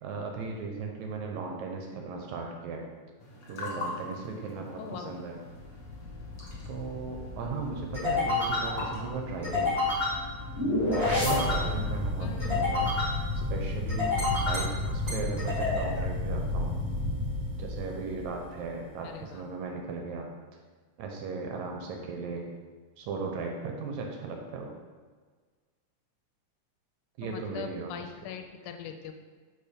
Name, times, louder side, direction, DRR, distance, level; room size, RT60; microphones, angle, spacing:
voice 1, 0.0-2.9 3.5-5.4 6.7-9.7 10.9-12.9 13.3-16.7 17.6-20.3 21.0-22.5 23.0-24.7 27.2-28.1, right 4 dB, 75° right, 2 dB, 1.9 m, -37 dB
sound 1, 3.2-12.1, left 2 dB, 45° left, 1.5 m, -42 dB
voice 2, 4.8-5.2 12.2-12.7 19.0-19.5 27.2-29.1, left 7 dB, 80° left, 6 dB, 1.9 m, -41 dB
sound 2, 5.6-18.4, left 2 dB, 15° right, 1.1 m, -30 dB
5.5 x 4.5 x 5.0 m, 1.5 s
omnidirectional pair, 3.6 m